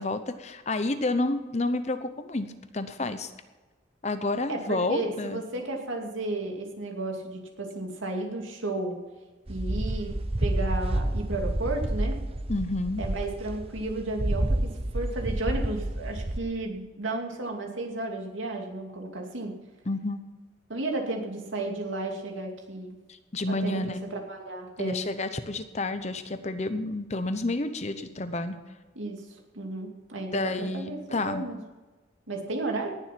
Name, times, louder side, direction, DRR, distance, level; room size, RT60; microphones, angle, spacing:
voice 1, 0.0-2.5 2.7-3.3 4.0-5.4 12.5-13.0 19.9-20.2 23.3-24.0 24.8-28.6 30.3-31.4, left 2 dB, 35° left, 10 dB, 0.8 m, -29 dB
voice 2, 4.5-9.0 9.5-10.1 10.4-12.1 13.0-19.5 20.7-22.9 23.6-25.0 29.0-31.0 31.2-31.6 32.3-32.9, right 2 dB, 80° right, 1 dB, 2.5 m, -33 dB
sound 1, 9.5-16.4, right 1 dB, 30° right, 0.8 m, -29 dB
18.5 x 7.4 x 5.9 m, 1.2 s
head